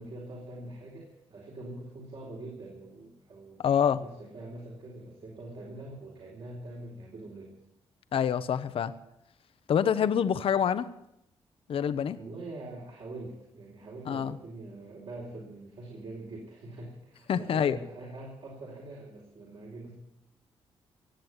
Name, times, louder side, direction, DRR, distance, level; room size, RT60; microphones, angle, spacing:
voice 1, 0.0-3.6 3.9-7.5 12.1-19.9, right 2 dB, 65° right, -3 dB, 4.3 m, -44 dB
voice 2, 3.6-4.0 8.1-8.9 9.7-10.9 11.7-12.2 14.1-14.3 17.3-17.8, left 8 dB, 65° left, 12 dB, 0.8 m, -26 dB
18.0 x 7.8 x 9.7 m, 0.85 s
cardioid pair, 70°, 10 cm